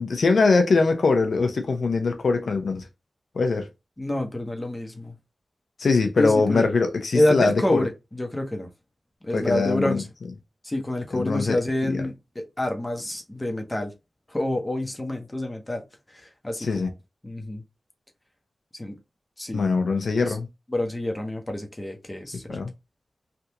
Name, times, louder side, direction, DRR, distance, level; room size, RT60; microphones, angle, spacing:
voice 1, 0.0-2.9 3.3-3.7 5.8-7.9 9.3-10.0 11.1-11.6 11.8-12.0 16.6-16.9 19.5-20.5 22.5-22.7, left 4 dB, 80° left, 0.8 m, -22 dB
voice 2, 4.0-5.1 6.2-6.7 7.1-8.7 9.2-10.0 10.6-13.9 14.3-15.8 16.1-16.8 17.2-17.6 18.8-19.0 19.4-19.6 20.2-20.3 20.7-22.6, left 1 dB, 25° left, 1.0 m, -27 dB
3.4 x 2.5 x 2.8 m
cardioid pair, 45°, 0 cm